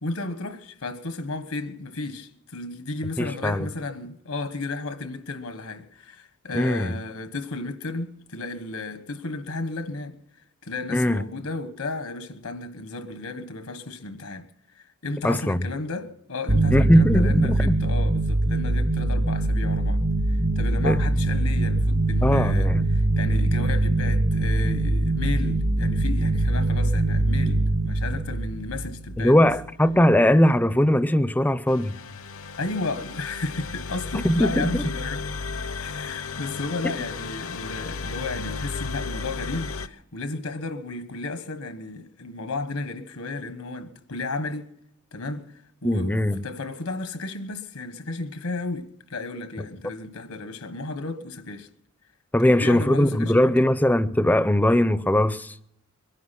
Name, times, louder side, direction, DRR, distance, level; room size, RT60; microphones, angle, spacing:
voice 1, 0.0-10.2 10.6-14.5 14.8-20.0 20.6-29.4 32.6-35.2 35.8-44.7 45.1-45.4 45.8-51.7 52.4-53.7, left 3 dB, 85° left, 1.4 m, -33 dB
voice 2, 3.2-3.7 6.5-6.9 10.9-11.2 15.2-15.7 16.7-17.8 20.8-21.0 22.2-22.9 29.2-32.0 34.2-34.9 45.8-46.4 52.3-55.5, left 1 dB, 10° left, 0.5 m, -20 dB
sound 1, 16.5-29.6, right 2 dB, 60° right, 1.6 m, -23 dB
sound 2, 31.7-39.9, left 4 dB, 65° left, 0.7 m, -34 dB
22.5 x 11.0 x 5.8 m
head